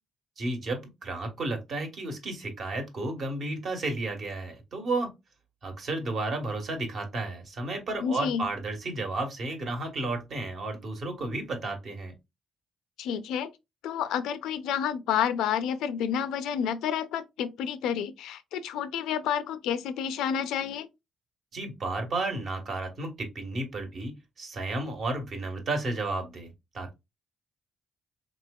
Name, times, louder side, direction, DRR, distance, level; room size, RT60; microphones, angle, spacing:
voice 1, 0.4-5.1 5.6-12.1 21.5-26.9, right 2 dB, 55° right, 1.3 m, -32 dB
voice 2, 8.0-8.5 13.0-13.5 13.8-20.9, left 8 dB, 90° left, 0.4 m, -30 dB
3.8 x 2.9 x 2.3 m
cardioid pair, 90°, 0 cm